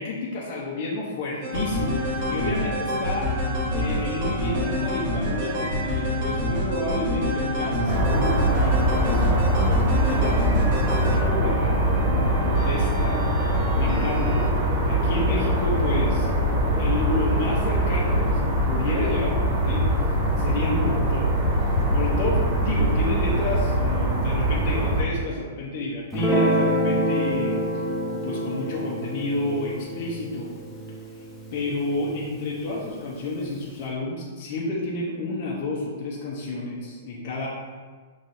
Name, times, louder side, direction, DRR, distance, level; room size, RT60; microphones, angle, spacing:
voice 1, 0.0-9.4 10.0-10.3 10.8-13.2 13.8-14.4 14.8-16.3 16.8-19.9 20.4-21.3 21.9-27.8 28.1-30.5 31.5-37.5, left 2 dB, 50° left, -4 dB, 0.7 m, -30 dB
sound 1, 1.4-14.5, left 1 dB, 55° right, 1.1 m, -27 dB
sound 2, 7.8-25.0, right 1 dB, 40° right, 1.0 m, -22 dB
Guitar, 26.1-32.7, right 1 dB, 10° left, 0.7 m, -27 dB
5.3 x 3.1 x 2.6 m, 1.5 s
hypercardioid pair, 120°, 0 cm